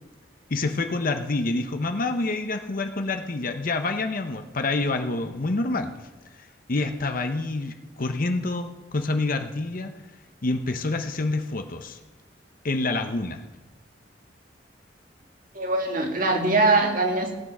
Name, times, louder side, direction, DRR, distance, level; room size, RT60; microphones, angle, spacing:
voice 1, 0.5-9.9 10.4-12.0 12.6-13.4, left 2 dB, 50° left, 6 dB, 0.8 m, -27 dB
voice 2, 15.5-17.3, right 2 dB, 50° right, 2 dB, 2.2 m, -22 dB
17.5 x 8.8 x 6.1 m, 1.1 s
head